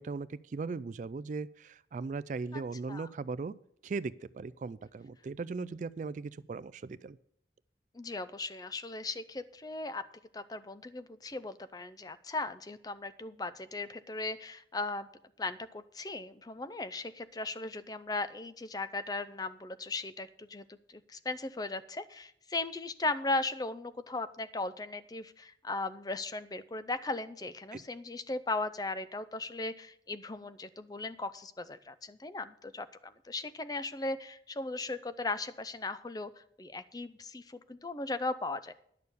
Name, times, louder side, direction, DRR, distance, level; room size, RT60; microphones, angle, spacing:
voice 1, 0.0-3.5 3.8-7.2 27.7-27.8, right 4 dB, 45° right, 18 dB, 0.3 m, -38 dB
voice 2, 7.9-10.0 10.3-15.1 15.4-38.7, left 2 dB, 20° left, 13 dB, 0.5 m, -37 dB
11.0 x 6.8 x 6.8 m, 0.69 s
head